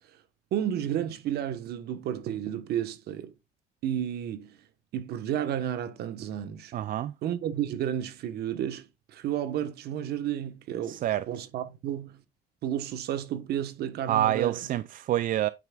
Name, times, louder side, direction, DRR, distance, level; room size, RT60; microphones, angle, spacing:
voice 1, 0.5-3.3 3.8-4.6 4.9-6.7 7.2-12.2 12.6-14.6, right 10 dB, 70° right, 1.1 m, -32 dB
voice 2, 6.7-7.1 10.9-11.3 14.1-15.5, right 13 dB, 55° right, 0.4 m, -27 dB
9.0 x 5.9 x 2.3 m
cardioid pair, 110°, 17 cm